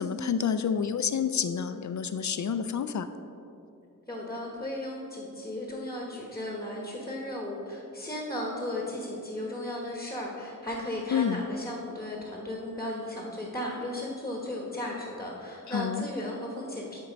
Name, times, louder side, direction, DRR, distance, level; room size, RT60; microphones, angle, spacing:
voice 1, 0.0-3.1 11.1-11.4 15.7-16.1, left 7 dB, 60° left, 10 dB, 0.4 m, -28 dB
voice 2, 4.1-17.0, left 1 dB, 10° left, -2 dB, 1.2 m, -35 dB
12.5 x 4.5 x 5.2 m, 2.7 s
wide cardioid pair, 120°, 34 cm